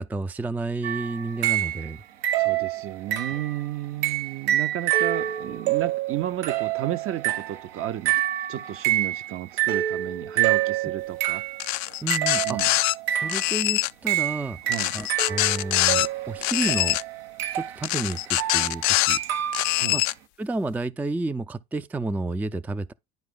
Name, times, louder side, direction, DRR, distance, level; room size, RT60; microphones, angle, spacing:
voice 1, 0.0-2.0 12.0-12.6 13.1-14.6 14.9-17.0 17.5-19.2 19.9-20.0 20.4-22.9, right 2 dB, 5° right, 0.4 m, -30 dB
sound 1, 0.8-2.0 2.2-3.6 4.0-11.7 12.1-13.6 14.1-19.8, right 13 dB, 75° right, 0.9 m, -27 dB
voice 2, 2.4-8.2 8.5-11.4 12.4-12.7 14.6-14.9 19.8-20.0, right 12 dB, 45° right, 0.7 m, -32 dB
sound 2, 11.6-12.9 13.3-13.9 14.7-16.1 16.4-17.0 17.8-19.2 19.5-20.1, left 20 dB, 65° left, 0.5 m, -24 dB
10.5 x 4.9 x 3.7 m
hypercardioid pair, 65°, 30 cm